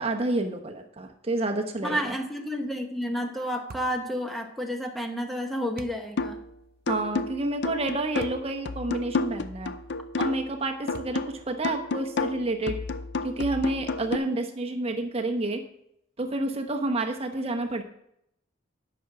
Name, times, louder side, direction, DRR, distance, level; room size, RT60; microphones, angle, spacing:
voice 1, 0.0-2.2 6.9-9.7 10.2-12.8 13.2-15.6 16.2-17.8, right 2 dB, 30° right, 4 dB, 0.9 m, -29 dB
voice 2, 1.8-6.4, equal, ahead, 4 dB, 0.9 m, -30 dB
sound 1, 3.7-4.0 5.8-6.1 8.2-8.5 9.1-9.2 10.9-11.4, right 3 dB, 50° right, 0.5 m, -43 dB
sound 2, 6.2-6.5 6.9-10.6 10.9-14.2, left 3 dB, 60° left, 0.6 m, -31 dB
10.0 x 6.1 x 5.9 m, 0.76 s
head